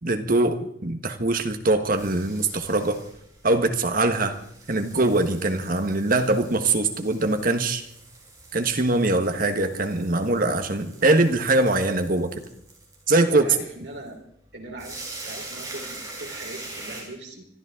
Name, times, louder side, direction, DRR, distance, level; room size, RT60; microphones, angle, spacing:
voice 1, 0.0-3.0 3.4-4.4 4.7-7.8 8.5-12.4 13.1-13.4, right 2 dB, 45° right, 7 dB, 1.4 m, -22 dB
sound 1, 1.3-17.0, right 2 dB, 20° right, 4.6 m, -44 dB
voice 2, 13.3-14.2 14.5-17.5, right 2 dB, 65° right, 0 dB, 4.0 m, -40 dB
25.5 x 13.0 x 3.7 m, 0.71 s
head